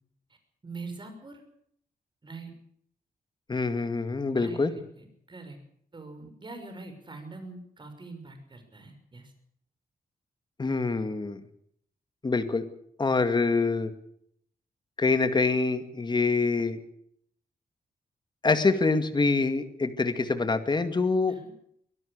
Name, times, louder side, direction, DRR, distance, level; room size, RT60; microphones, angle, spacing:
voice 1, 0.6-1.4 2.2-2.5 4.4-5.6 5.9-9.3 21.3-21.5, right 3 dB, 30° right, 6 dB, 6.2 m, -43 dB
voice 2, 3.5-4.8 10.6-11.4 12.2-12.7 13.0-13.9 15.0-16.8 18.4-21.4, left 3 dB, 30° left, 9 dB, 2.2 m, -25 dB
24.5 x 17.0 x 6.6 m, 0.68 s
wide cardioid pair, 125°, 16 cm